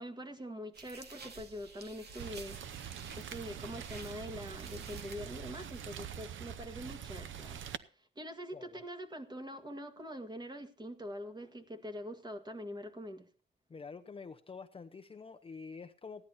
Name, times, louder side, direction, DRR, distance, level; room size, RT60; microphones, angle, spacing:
voice 1, 0.0-2.6 3.2-7.6 8.0-13.3, equal, 20° right, 1.9 m, -44 dB
sound 1, 0.7-6.0, right 4 dB, 60° right, 2.3 m, -52 dB
Rain, 2.2-7.8, right 9 dB, 85° right, 0.8 m, -44 dB
voice 2, 13.7-16.2, left 5 dB, 30° left, 0.7 m, -47 dB
15.5 x 10.5 x 4.2 m
wide cardioid pair, 145°, 19 cm